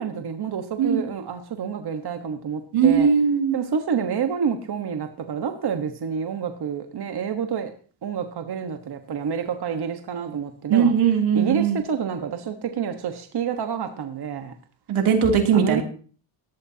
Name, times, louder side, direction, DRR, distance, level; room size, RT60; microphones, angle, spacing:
voice 1, 0.0-3.1 3.5-7.7 8.0-10.9 11.3-14.5 15.5-15.8, right 7 dB, 55° right, 6 dB, 1.4 m, -28 dB
voice 2, 2.7-3.6 10.7-11.8 14.9-15.8, right 7 dB, 90° right, 3 dB, 3.0 m, -19 dB
18.5 x 12.5 x 2.8 m, 0.40 s
cardioid pair, 95°, 48 cm